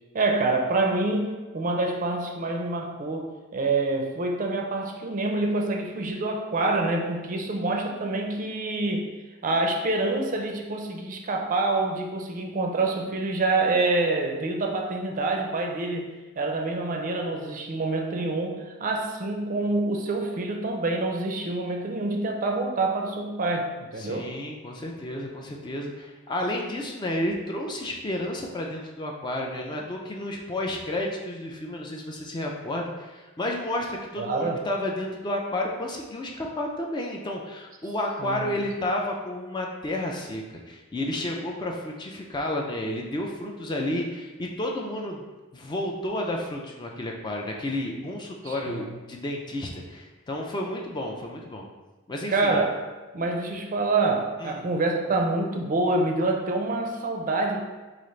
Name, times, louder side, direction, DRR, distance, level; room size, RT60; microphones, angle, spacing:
voice 1, 0.1-9.1 9.4-24.3 34.2-34.6 38.2-38.5 48.4-49.0 52.3-52.8 53.1-57.6, right 2 dB, 40° right, 2 dB, 0.4 m, -26 dB
voice 2, 24.0-45.2 45.5-51.7 52.1-52.6 54.4-54.7, left 1 dB, 20° left, 0 dB, 0.4 m, -31 dB
4.9 x 2.4 x 3.1 m, 1.2 s
head